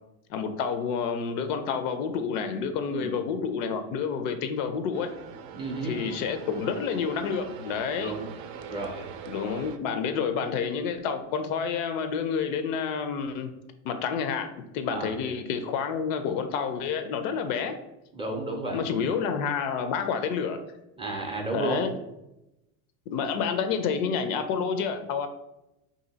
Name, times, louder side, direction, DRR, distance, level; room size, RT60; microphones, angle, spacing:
voice 1, 0.3-5.1 5.8-8.1 9.3-13.5 13.8-17.8 18.7-20.6 21.5-21.9 23.1-25.3, left 6 dB, 65° left, 8 dB, 0.5 m, -29 dB
sound 1, 4.9-9.8, right 7 dB, 60° right, 0.5 m, -43 dB
voice 2, 5.5-5.9 8.0-8.3 8.7-9.1 14.9-15.1 18.1-18.8 21.0-21.8, right 2 dB, 15° right, 1 dB, 0.5 m, -32 dB
2.8 x 2.6 x 3.8 m, 0.92 s
supercardioid pair, 100°, 43 cm